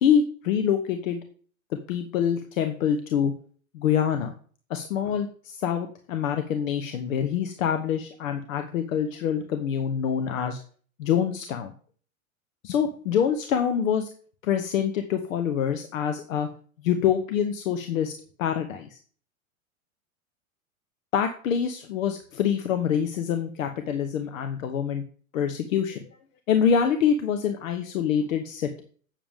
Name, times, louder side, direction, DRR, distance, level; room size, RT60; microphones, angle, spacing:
voice 1, 0.0-1.2 1.9-3.3 3.7-4.3 4.7-10.6 11.0-11.7 12.6-14.1 14.4-16.5 16.8-19.0 21.1-25.0 25.3-26.1 26.5-28.8, left 8 dB, 70° left, 7 dB, 1.1 m, -25 dB
8.8 x 7.2 x 3.6 m, 0.43 s
hypercardioid pair, 105°, 41 cm